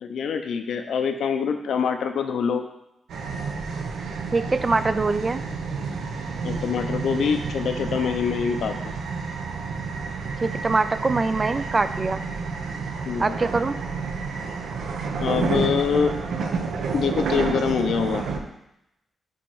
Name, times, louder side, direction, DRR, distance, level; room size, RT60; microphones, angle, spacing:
voice 1, 0.0-2.6 6.4-8.9 13.1-13.3 15.2-16.1 16.9-18.2, left 6 dB, 80° left, 6 dB, 0.6 m, -25 dB
sound 1, 3.1-18.4, right 4 dB, 80° right, 0.7 m, -30 dB
voice 2, 4.3-5.4 10.4-12.3 13.2-13.7, right 3 dB, 30° right, 12 dB, 0.3 m, -23 dB
8.6 x 3.1 x 4.6 m, 0.84 s
cardioid pair, 100°, 0 cm